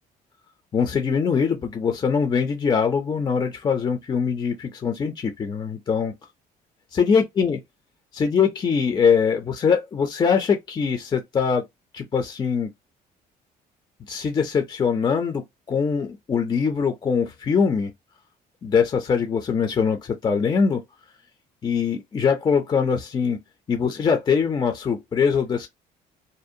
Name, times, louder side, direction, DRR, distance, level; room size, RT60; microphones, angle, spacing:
voice 1, 0.7-6.1 6.9-7.6 8.1-11.6 11.9-12.7 14.1-15.4 15.7-17.9 18.6-20.8 21.6-23.4 23.7-25.7, left 6 dB, 25° left, 0.4 m, -22 dB
2.6 x 2.1 x 2.6 m
cardioid pair, 110°, 17 cm